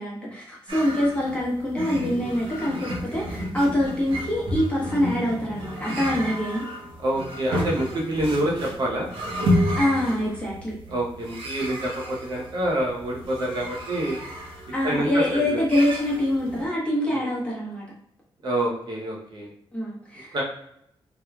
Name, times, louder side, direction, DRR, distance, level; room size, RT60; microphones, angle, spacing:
voice 1, 0.0-6.6 9.7-10.7 14.7-17.8 19.7-20.4, left 1 dB, 10° left, -6 dB, 1.0 m, -25 dB
sound 1, 0.7-16.6, equal, 75° right, 0.9 m, -31 dB
voice 2, 7.0-9.1 10.9-14.2 14.8-15.6 17.1-17.3 18.4-19.5 20.3-20.4, right 1 dB, 50° right, -2 dB, 0.7 m, -27 dB
2.9 x 2.2 x 3.4 m, 0.73 s
wide cardioid pair, 175°, 10 cm